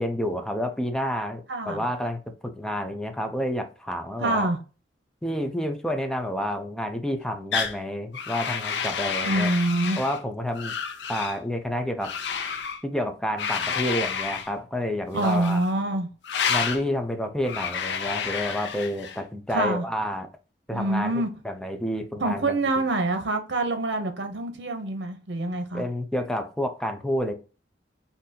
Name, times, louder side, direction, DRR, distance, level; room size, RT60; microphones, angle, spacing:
voice 1, 0.0-4.5 5.2-9.5 10.0-10.7 11.1-12.1 12.8-15.6 16.5-20.3 20.7-21.1 21.4-22.6 25.7-27.3, equal, 5° left, 0.5 m, -29 dB
voice 2, 1.5-1.9 4.2-4.6 9.2-10.0 15.1-16.1 19.5-19.8 20.7-21.3 22.2-25.8, right 2 dB, 70° right, 0.7 m, -26 dB
sound 1, 7.5-7.8 8.1-10.2 10.5-11.4 12.0-12.8 13.4-14.5 15.1-15.7 16.2-16.8 17.4-19.2, left 6 dB, 70° left, 0.5 m, -30 dB
3.9 x 2.7 x 2.7 m
head